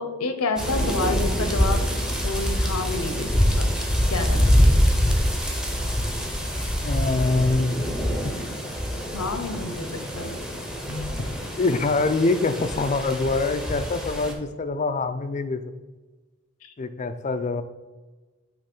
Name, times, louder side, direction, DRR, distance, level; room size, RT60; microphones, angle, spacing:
voice 1, 0.0-1.8 2.2-3.3 3.6-3.7 4.1-4.5 9.1-10.4 10.9-11.1 16.6-16.7, left 3 dB, 80° left, 8 dB, 0.8 m, -29 dB
sound 1, 0.6-14.3, equal, 5° right, 0.8 m, -25 dB
voice 2, 6.8-7.8 11.6-15.6 16.8-17.6, left 3 dB, 35° left, 10 dB, 0.4 m, -24 dB
8.7 x 3.1 x 5.4 m, 1.2 s
head